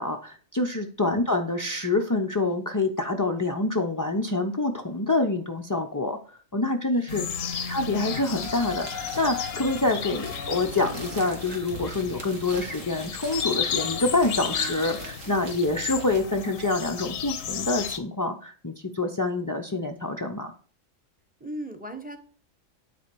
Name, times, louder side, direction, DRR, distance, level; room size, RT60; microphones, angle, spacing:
voice 1, 0.0-6.2 6.5-7.2 7.7-20.5, left 2 dB, 30° left, 3 dB, 0.4 m, -26 dB
voice 2, 6.9-7.6 21.4-22.2, right 1 dB, 10° right, 8 dB, 0.8 m, -39 dB
sound 1, 7.1-18.0, left 7 dB, 90° left, 1.2 m, -33 dB
sound 2, 8.2-16.2, right 4 dB, 75° right, 1.9 m, -43 dB
9.0 x 4.2 x 4.5 m, 0.43 s
omnidirectional pair, 1.3 m